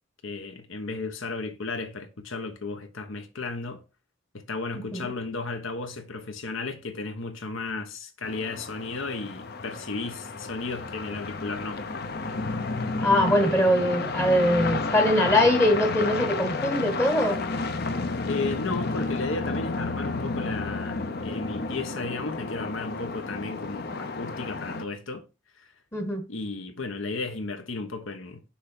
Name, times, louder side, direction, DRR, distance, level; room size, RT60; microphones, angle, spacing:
voice 1, 0.2-3.8 4.3-11.8 18.3-25.2 26.3-28.4, left 3 dB, 75° left, 1.1 m, -34 dB
voice 2, 4.7-5.1 13.0-17.4 25.9-26.2, left 1 dB, 10° left, 0.9 m, -22 dB
sound 1, 8.2-24.8, left 3 dB, 50° left, 0.7 m, -31 dB
6.2 x 3.4 x 6.0 m
head